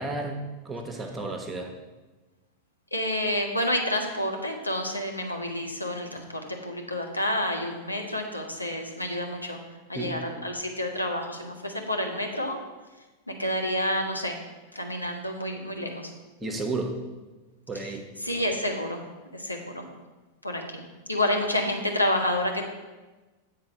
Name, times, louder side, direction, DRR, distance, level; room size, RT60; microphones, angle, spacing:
voice 1, 0.0-1.7 9.9-10.2 16.4-17.0 17.7-18.0, right 2 dB, 10° right, 4 dB, 0.9 m, -32 dB
voice 2, 2.9-9.6 9.9-12.6 13.3-14.4 14.7-16.1 17.8-17.9 18.2-19.0 19.3-19.9 20.4-22.7, left 1 dB, 85° left, 2 dB, 0.9 m, -29 dB
7.9 x 4.2 x 5.2 m, 1.2 s
figure-of-eight pair, 90°, 0 cm